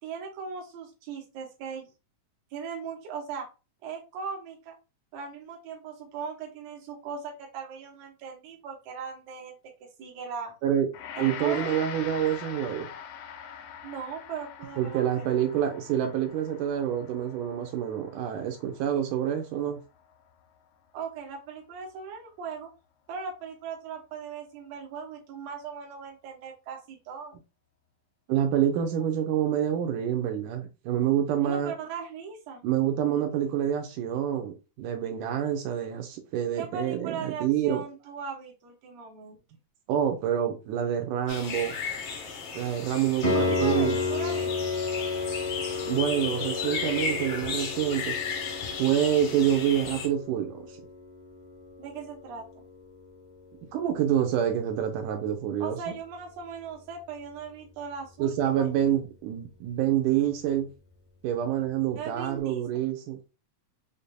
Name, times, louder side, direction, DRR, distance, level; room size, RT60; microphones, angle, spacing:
voice 1, 0.0-1.9 2.5-3.5 3.8-4.8 5.1-9.5 10.0-10.5 11.2-11.8 13.8-15.3 20.9-22.7 23.1-27.4 31.4-32.6 36.6-39.4 43.3-44.5 51.8-52.6 55.6-58.7 62.0-62.6, right 6 dB, 65° right, 2.0 m, -38 dB
Gong, 10.9-20.1, left 8 dB, 80° left, 2.1 m, -43 dB
voice 2, 11.2-12.9 14.8-19.8 28.3-31.7 32.6-37.8 39.9-41.8 42.5-44.0 45.9-48.2 48.8-50.8 53.7-56.0 58.2-60.7 61.2-63.2, right 10 dB, 85° right, 2.1 m, -27 dB
sound 1, 41.3-50.1, left 5 dB, 65° left, 1.5 m, -35 dB
Piano, 43.2-53.9 57.2-57.3, left 4 dB, 35° left, 0.7 m, -33 dB
6.5 x 2.6 x 2.2 m
omnidirectional pair, 3.6 m